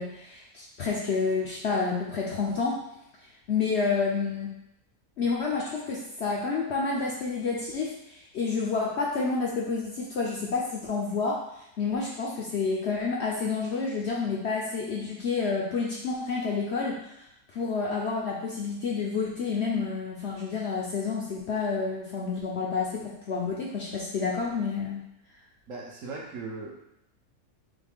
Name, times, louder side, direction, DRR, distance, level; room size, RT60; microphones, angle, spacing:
voice 1, 0.0-2.8 3.5-4.5 5.2-11.4 11.8-17.1 17.5-25.0, left 4 dB, 60° left, -3 dB, 0.7 m, -29 dB
voice 2, 25.7-26.8, right 3 dB, 65° right, -1 dB, 1.0 m, -38 dB
4.0 x 3.1 x 3.5 m, 0.81 s
omnidirectional pair, 1.6 m